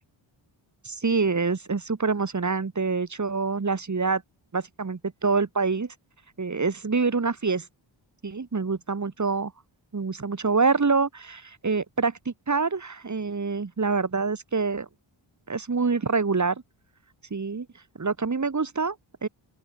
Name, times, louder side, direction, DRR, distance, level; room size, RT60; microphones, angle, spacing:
voice 1, 0.8-4.2 4.5-5.9 6.4-7.7 8.2-9.5 9.9-14.9 15.5-16.6 17.3-17.7 18.0-19.0 19.2-19.3, right 4 dB, 35° right, 4.0 m, -26 dB
open air
wide cardioid pair, 105°, 47 cm